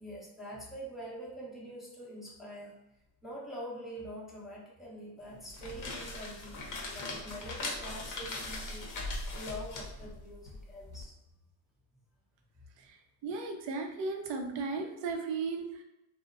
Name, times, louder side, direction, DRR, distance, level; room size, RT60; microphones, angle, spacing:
voice 1, 0.0-2.8 3.2-11.1, equal, ahead, -6 dB, 0.7 m, -45 dB
sound 1, 5.4-11.0, left 2 dB, 45° left, 0.7 m, -40 dB
voice 2, 12.8-15.8, right 4 dB, 65° right, 4 dB, 0.6 m, -36 dB
2.8 x 2.0 x 2.4 m, 0.93 s
cardioid pair, 95°, 48 cm